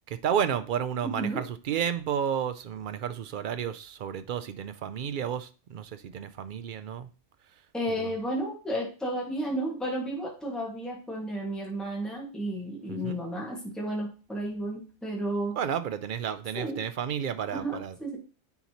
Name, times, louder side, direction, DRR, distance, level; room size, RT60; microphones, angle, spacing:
voice 1, 0.1-7.1 7.9-8.2 12.9-13.2 15.6-18.2, right 8 dB, 60° right, 0.6 m, -32 dB
voice 2, 1.0-1.4 7.7-15.6 16.6-16.8 17.5-18.2, right 1 dB, ahead, 1.8 m, -32 dB
9.6 x 4.1 x 3.0 m
omnidirectional pair, 1.2 m